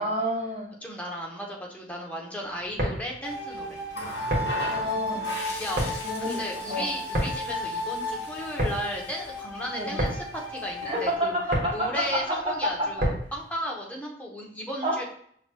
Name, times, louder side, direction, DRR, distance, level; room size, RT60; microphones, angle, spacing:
voice 1, 0.0-0.7 4.7-5.2 6.0-6.9 9.7-10.0 10.8-12.2 12.5-12.6 14.8-15.0, equal, 30° right, -4 dB, 1.4 m, -29 dB
voice 2, 0.8-3.8 5.6-5.9 6.2-11.4 11.7-15.0, equal, 10° left, -1 dB, 0.7 m, -35 dB
sound 1, 2.6-13.5, equal, 50° right, 1.1 m, -32 dB
sound 2, 3.2-11.1, left 1 dB, 25° left, 1.1 m, -34 dB
Water tap faucet, 3.9-9.5 10.7-10.9, left 1 dB, 75° left, 0.9 m, -39 dB
5.7 x 3.0 x 2.2 m, 0.63 s
head